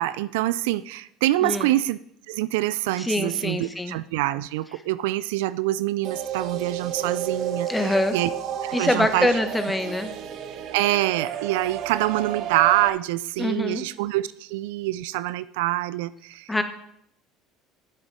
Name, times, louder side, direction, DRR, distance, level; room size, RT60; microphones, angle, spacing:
voice 1, 0.0-2.0 2.3-8.3 8.6-9.3 10.7-16.6, right 16 dB, 75° right, 16 dB, 0.3 m, -25 dB
voice 2, 3.0-3.9 7.7-8.2 8.7-10.1 13.4-13.8 16.5-16.6, left 1 dB, 10° left, 8 dB, 1.4 m, -24 dB
sound 1, 6.0-12.9, right 9 dB, 55° right, 0.8 m, -31 dB
9.0 x 7.6 x 4.8 m, 0.72 s
hypercardioid pair, 70°, 0 cm